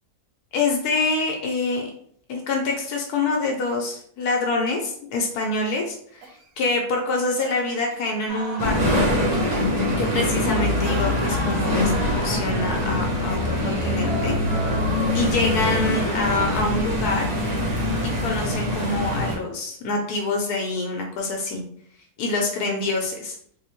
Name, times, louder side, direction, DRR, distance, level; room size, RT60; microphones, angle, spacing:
voice 1, 0.5-1.9 2.3-6.3 6.6-9.1 10.0-14.4 15.1-17.3 18.0-21.6 22.2-23.3, left 3 dB, 75° left, 2 dB, 1.2 m, -26 dB
Cough, 6.2-6.6 7.4-8.1 9.3-9.6 10.8-11.9 15.0-15.8 17.2-17.3, right 3 dB, 85° right, 1.3 m, -41 dB
sound 1, 8.3-16.7, right 1 dB, 60° right, 1.1 m, -35 dB
sound 2, 8.6-19.4, left 1 dB, 30° right, 0.8 m, -23 dB
3.9 x 2.7 x 2.9 m, 0.62 s
omnidirectional pair, 1.7 m